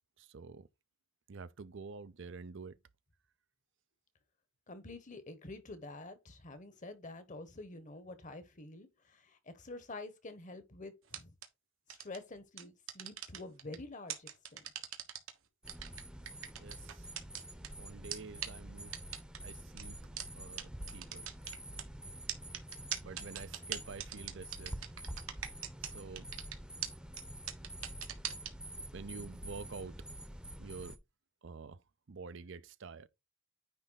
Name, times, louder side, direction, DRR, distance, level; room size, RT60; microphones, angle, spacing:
voice 1, 0.2-0.7 1.3-2.8 16.6-17.1 17.8-19.0 19.4-20.0 20.3-21.3 23.0-24.8 25.9-26.3 28.9-30.0 30.6-31.0 31.4-31.8 32.1-33.1, right 4 dB, 65° right, 0.6 m, -48 dB
voice 2, 4.7-11.3 11.9-14.7, left 2 dB, 40° left, 1.2 m, -48 dB
sound 1, 11.1-11.5 11.9-12.2 12.6-13.8 14.1-15.3 15.7-17.7 18.1-18.2 18.4-18.5 18.9-19.4 19.8-19.9 20.2-20.3 20.6-20.7 20.9-21.8 22.3-25.9 26.2-26.5 26.8-26.9 27.2-27.3 27.5-28.5, right 10 dB, 85° right, 1.3 m, -39 dB
sound 2, 15.6-31.0, right 1 dB, 5° right, 0.8 m, -47 dB
9.6 x 3.4 x 4.0 m
head